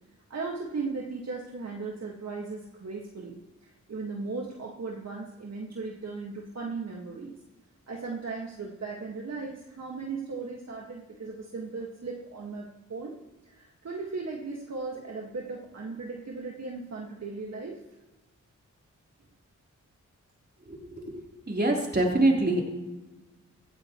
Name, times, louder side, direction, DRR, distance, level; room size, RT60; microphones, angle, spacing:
voice 1, 0.3-7.4 7.9-13.2 13.5-17.8, right 4 dB, 55° right, -2 dB, 2.0 m, -37 dB
voice 2, 20.6-21.2 21.5-22.6, right 2 dB, 30° right, -2 dB, 3.9 m, -25 dB
15.5 x 14.0 x 3.2 m, 1.1 s
cardioid pair, 55°, 32 cm